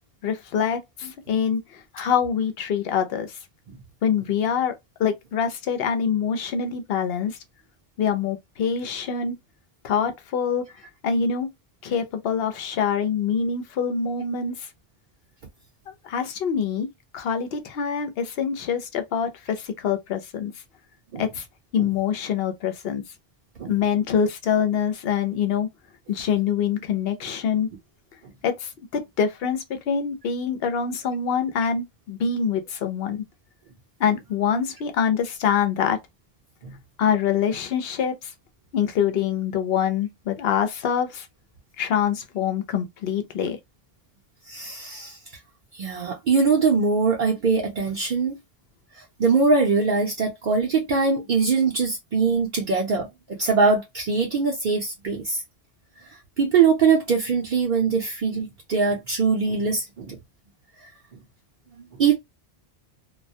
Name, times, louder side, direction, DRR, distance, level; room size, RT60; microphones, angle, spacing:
voice 1, 0.2-3.4 4.0-4.7 5.0-7.4 8.0-9.4 9.8-10.6 11.0-11.5 11.8-14.7 16.0-16.9 17.1-20.5 21.2-21.4 21.7-23.0 23.7-25.7 26.1-27.7 28.4-33.2 34.0-36.0 37.0-38.3 38.7-41.3 41.8-43.6, left 7 dB, 70° left, 0.8 m, -25 dB
voice 2, 44.5-45.2 45.7-48.4 48.9-55.4 56.1-60.2 60.8-60.9 61.8-62.1, right 5 dB, 55° right, 0.7 m, -22 dB
2.3 x 2.1 x 2.6 m
omnidirectional pair, 1.0 m